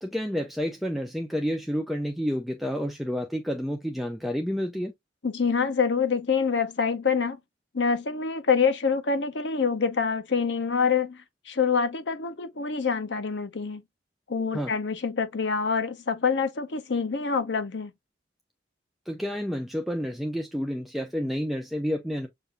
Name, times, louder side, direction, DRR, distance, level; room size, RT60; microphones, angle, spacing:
voice 1, 0.0-4.9 14.5-14.7 19.1-22.3, equal, ahead, 0.5 m, -30 dB
voice 2, 5.2-7.4 7.7-11.2 11.5-13.8 14.3-17.9, left 5 dB, 70° left, 0.8 m, -26 dB
6.7 x 2.6 x 2.4 m
head